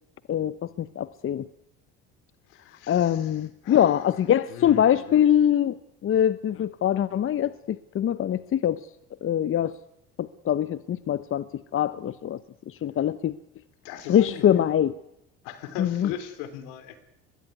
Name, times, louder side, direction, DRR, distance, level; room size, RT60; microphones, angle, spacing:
voice 1, 0.3-1.5 2.9-5.8 6.0-8.8 9.2-9.7 10.2-12.4 12.7-13.3 14.1-14.9 15.8-16.1, left 10 dB, 45° left, 15 dB, 1.0 m, -23 dB
voice 2, 2.5-5.5 13.0-13.1 13.8-14.6 15.4-17.0, left 10 dB, 80° left, 12 dB, 3.4 m, -39 dB
23.0 x 21.5 x 9.5 m, 0.84 s
supercardioid pair, 75°, 30 cm